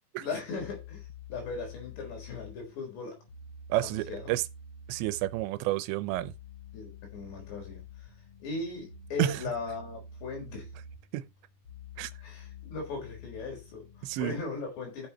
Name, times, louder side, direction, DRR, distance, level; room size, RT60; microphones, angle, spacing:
voice 1, 0.2-3.2 3.8-4.3 6.7-8.1 8.4-10.7 12.2-15.1, left 4 dB, 75° left, 6.4 m, -38 dB
sound 1, 0.6-14.4, left 3 dB, 50° left, 1.7 m, -48 dB
voice 2, 3.7-4.4 4.9-6.3 9.2-9.4 11.1-11.3 12.0-12.1 14.0-14.4, right 15 dB, 85° right, 3.0 m, -30 dB
13.0 x 7.1 x 3.1 m
omnidirectional pair, 5.0 m